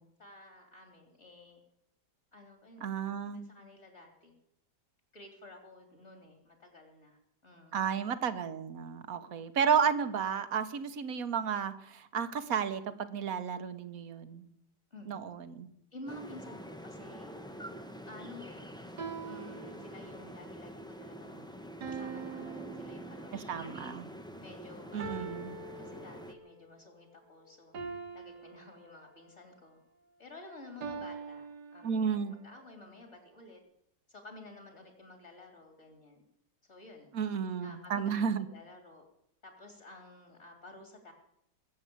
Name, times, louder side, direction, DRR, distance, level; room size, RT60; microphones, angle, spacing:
voice 1, 0.0-1.6 2.3-2.9 3.3-4.3 5.1-7.8 14.9-15.1 15.9-17.3 18.1-18.7 19.2-20.7 21.0-21.5 21.8-23.8 24.4-25.5 25.8-27.7 28.1-29.8 30.2-31.5 31.7-33.6 34.1-36.2 36.6-37.1 37.6-39.0 39.4-41.1, left 1 dB, 40° left, 3 dB, 3.2 m, -52 dB
voice 2, 2.8-3.5 7.7-14.5 15.1-15.7 23.5-24.0 24.9-25.6 31.8-32.3 37.1-38.5, right 7 dB, 60° right, 11 dB, 1.5 m, -32 dB
sound 1, 16.1-26.3, right 1 dB, 5° left, 0.7 m, -46 dB
sound 2, 17.0-17.4 19.0-20.5 21.8-23.6 25.0-26.6 27.7-29.4 30.8-32.4, right 5 dB, 75° right, 2.2 m, -44 dB
21.0 x 8.0 x 8.5 m, 0.76 s
omnidirectional pair, 1.8 m